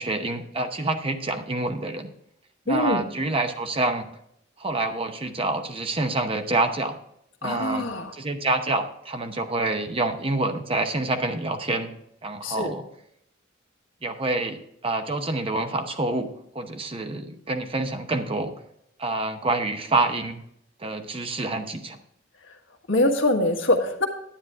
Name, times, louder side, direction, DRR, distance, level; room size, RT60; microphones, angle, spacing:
voice 1, 0.0-2.1 2.7-4.1 4.6-7.0 7.4-7.9 8.1-11.9 12.2-12.8 14.0-16.3 16.5-18.5 19.0-20.4 20.8-22.0, right 2 dB, 30° right, 6 dB, 0.8 m, -27 dB
voice 2, 2.7-3.0 7.4-8.1 12.4-12.7 22.9-24.1, left 1 dB, 85° left, 3 dB, 1.6 m, -23 dB
10.0 x 9.2 x 3.6 m, 0.74 s
head